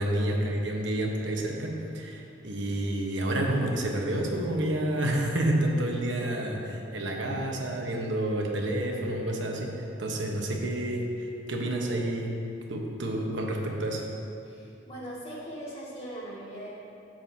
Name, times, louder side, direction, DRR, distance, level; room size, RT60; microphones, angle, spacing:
voice 1, 0.0-12.4 12.7-14.1, right 1 dB, 65° right, 0 dB, 1.2 m, -29 dB
voice 2, 14.4-16.7, right 1 dB, 30° left, -7 dB, 2.2 m, -40 dB
12.0 x 7.6 x 2.8 m, 2.6 s
head